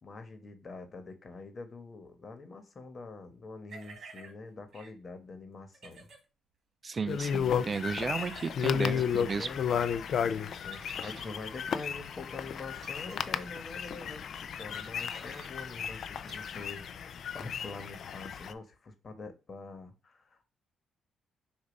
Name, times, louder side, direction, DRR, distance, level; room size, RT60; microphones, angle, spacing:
voice 1, 0.0-6.1 8.8-9.8 10.2-20.5, left 3 dB, 40° left, 1.3 m, -45 dB
sound 1, 3.7-4.3 4.7-4.9 5.7-6.2 7.7-8.5 9.3-9.4 10.7-11.3 11.7-11.9 12.7-13.2 14.7-15.5 16.3-16.4, right 4 dB, 60° right, 1.8 m, -51 dB
voice 2, 6.8-9.5, right 4 dB, 35° right, 0.3 m, -34 dB
sound 2, 7.1-18.5, left 7 dB, 60° left, 0.4 m, -33 dB
6.9 x 2.6 x 5.2 m
cardioid pair, 90°, 0 cm